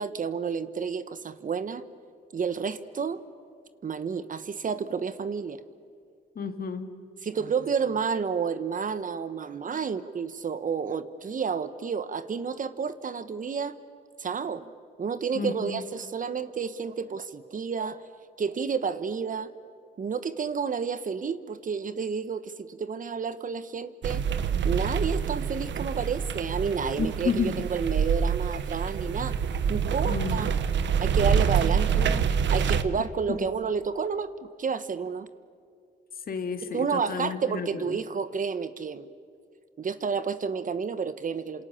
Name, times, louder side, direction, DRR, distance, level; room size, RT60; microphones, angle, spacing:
voice 1, 0.0-1.8 2.3-3.2 3.8-5.6 7.2-13.7 14.2-14.7 15.0-18.0 18.4-19.5 20.0-24.2 24.6-29.4 29.7-30.5 31.0-32.2 32.5-35.3 36.7-39.1 39.8-41.6, right 6 dB, 40° right, 13 dB, 1.2 m, -30 dB
voice 2, 6.4-6.9 15.3-15.8 27.0-27.6 30.0-30.4 36.3-38.0, left 5 dB, 50° left, 7 dB, 2.4 m, -31 dB
sound 1, 24.0-32.8, right 7 dB, 65° right, 1.3 m, -26 dB
28.5 x 27.0 x 7.2 m, 2.2 s
cardioid pair, 90°, 20 cm